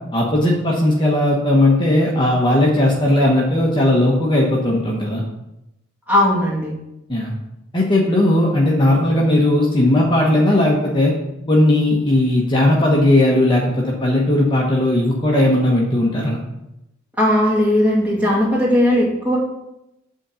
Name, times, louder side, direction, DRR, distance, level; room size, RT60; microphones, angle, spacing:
voice 1, 0.1-5.2 7.1-7.3 7.7-11.1 11.5-16.4, left 1 dB, 25° left, -3 dB, 1.1 m, -17 dB
voice 2, 6.1-6.7 17.2-19.4, left 1 dB, 10° right, -4 dB, 2.2 m, -17 dB
8.4 x 3.8 x 6.9 m, 0.88 s
head